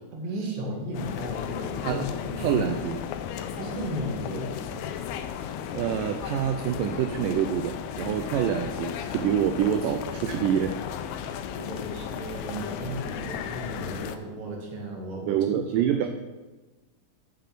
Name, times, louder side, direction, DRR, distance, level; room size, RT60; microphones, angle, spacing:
voice 1, 0.1-2.6 3.6-4.8 11.5-15.4 15.8-16.1, right 1 dB, 45° right, -1 dB, 2.5 m, -35 dB
sound 1, 0.9-14.2, left 8 dB, 90° left, 2.5 m, -34 dB
voice 2, 2.4-3.0 5.7-10.8 15.3-16.1, right 10 dB, 80° right, 6 dB, 2.1 m, -26 dB
8.4 x 5.9 x 7.5 m, 1.2 s
omnidirectional pair, 4.2 m